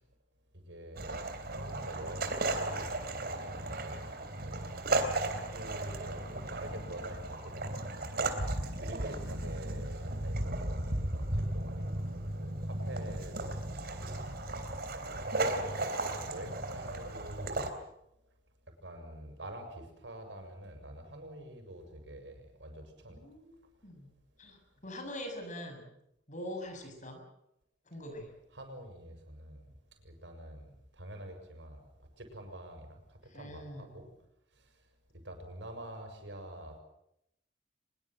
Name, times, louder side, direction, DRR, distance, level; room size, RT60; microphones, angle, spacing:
voice 1, 0.5-8.4 8.8-15.4 15.6-17.7 18.8-23.2 28.6-29.7 30.0-34.1 34.5-34.7 35.2-36.8, right 1 dB, 75° right, 5 dB, 7.0 m, -47 dB
sound 1, 1.0-17.7, right 2 dB, 60° right, 3.5 m, -35 dB
voice 2, 23.1-23.6 23.8-24.1 24.4-25.9 26.3-27.2 27.9-28.3 33.2-34.0, left 1 dB, 45° left, 6 dB, 6.9 m, -43 dB
24.0 x 22.5 x 7.7 m, 0.80 s
head